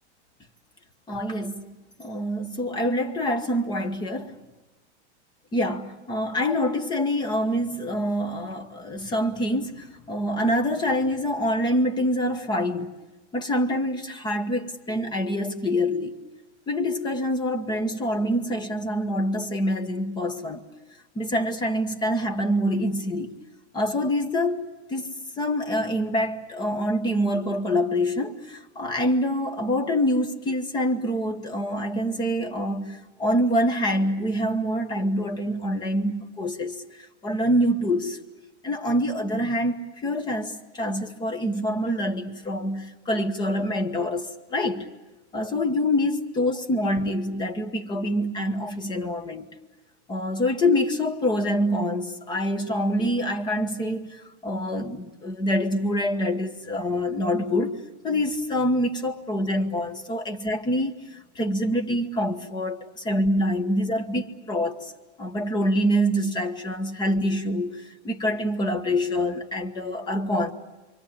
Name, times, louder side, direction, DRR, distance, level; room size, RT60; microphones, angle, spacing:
voice 1, 1.1-4.4 5.5-12.9 13.3-16.2 16.7-20.6 21.1-23.3 23.7-36.8 37.2-38.2 38.6-44.9 45.3-49.4 50.1-64.9 65.2-70.5, equal, 10° left, 1.3 m, -26 dB
27.5 x 24.0 x 8.8 m
supercardioid pair, 165°, 35 cm